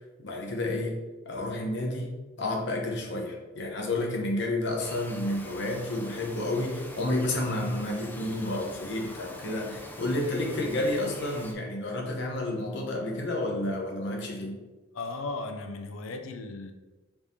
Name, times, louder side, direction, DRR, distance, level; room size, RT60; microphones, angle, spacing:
voice 1, 0.2-1.0 1.3-2.1 2.4-14.5, left 1 dB, 60° left, 0 dB, 0.9 m, -30 dB
Bird vocalization bird call bird song, 4.8-11.5, left 1 dB, 10° left, 0.3 m, -44 dB
voice 2, 14.9-16.7, left 3 dB, 80° left, 6 dB, 0.5 m, -36 dB
4.9 x 3.5 x 2.7 m, 1.2 s
head